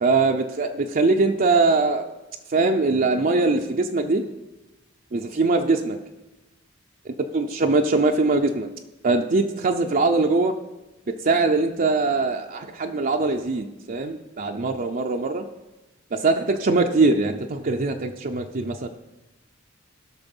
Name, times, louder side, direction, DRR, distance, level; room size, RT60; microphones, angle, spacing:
voice 1, 0.0-2.1 2.5-4.3 5.1-6.0 7.3-8.7 9.0-10.5 11.1-15.5 16.1-18.9, right 3 dB, 40° right, 3 dB, 0.5 m, -22 dB
15.5 x 6.4 x 5.3 m, 1.1 s
head